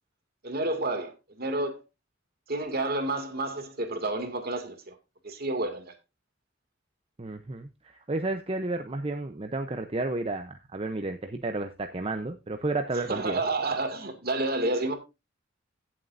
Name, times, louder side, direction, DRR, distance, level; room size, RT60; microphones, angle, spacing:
voice 1, 0.4-1.8 2.5-5.0 5.2-5.9 13.1-14.9, right 2 dB, 50° right, 2.3 m, -30 dB
voice 2, 7.2-13.4, right 2 dB, 30° right, 0.7 m, -32 dB
17.0 x 7.5 x 2.6 m
head